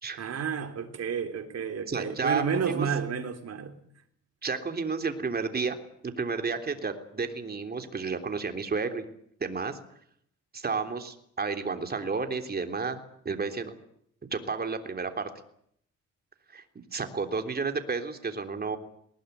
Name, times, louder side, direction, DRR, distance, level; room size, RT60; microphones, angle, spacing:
voice 1, 0.2-3.8, right 7 dB, 55° right, 3.7 m, -31 dB
voice 2, 1.9-2.9 4.4-5.8 6.0-9.0 9.4-9.8 10.5-13.7 14.3-15.3 16.5-16.6 16.9-18.8, right 4 dB, 30° right, 3.4 m, -31 dB
20.0 x 19.5 x 9.6 m
cardioid pair, 90°, 30 cm